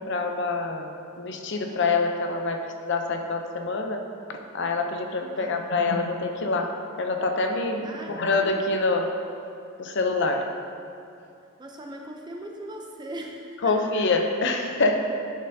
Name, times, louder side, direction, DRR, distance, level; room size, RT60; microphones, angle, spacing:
voice 1, 0.0-4.0 4.3-6.7 7.0-9.1 9.8-10.4 13.6-15.1, left 3 dB, 55° left, 4 dB, 0.6 m, -26 dB
voice 2, 7.8-8.2 11.6-13.8, right 1 dB, 20° right, 1 dB, 0.5 m, -39 dB
11.0 x 5.4 x 2.7 m, 2.5 s
head